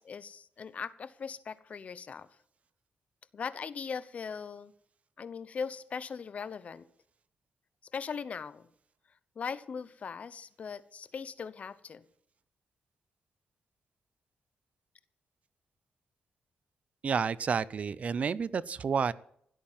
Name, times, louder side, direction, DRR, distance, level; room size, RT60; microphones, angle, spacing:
voice 1, 0.0-2.3 3.3-4.7 5.2-6.9 7.9-8.7 9.4-12.0, left 6 dB, 50° left, 16 dB, 0.9 m, -39 dB
voice 2, 17.0-19.1, right 6 dB, 50° right, 20 dB, 0.6 m, -30 dB
16.0 x 8.7 x 7.4 m, 0.68 s
cardioid pair, 100°, 3 cm